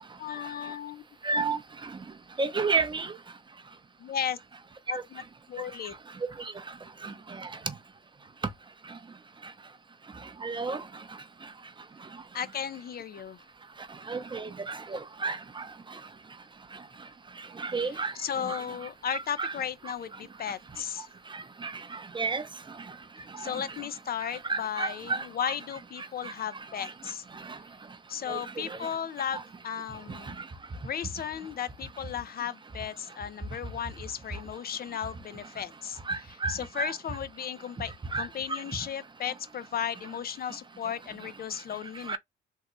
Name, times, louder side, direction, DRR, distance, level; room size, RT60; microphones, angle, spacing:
voice 1, 0.2-1.0 4.0-4.4 4.9-5.2 5.5-5.9 12.3-13.4 17.9-21.1 23.4-27.2 28.1-30.4 30.8-36.0 36.5-42.2, left 8 dB, 50° left, 0.5 m, -35 dB
voice 2, 1.2-1.6 2.4-3.1 4.9-5.0 7.0-7.1 10.4-10.8 14.1-15.4 17.6-18.1 18.5-18.6 19.4-19.5 21.6-21.7 22.1-22.4 24.5-25.2 25.4-25.5 28.3-28.4 36.1-36.9 38.1-38.3 42.1-42.2, right 4 dB, 25° right, 0.6 m, -30 dB
3.7 x 2.1 x 3.0 m
cardioid pair, 90°, 20 cm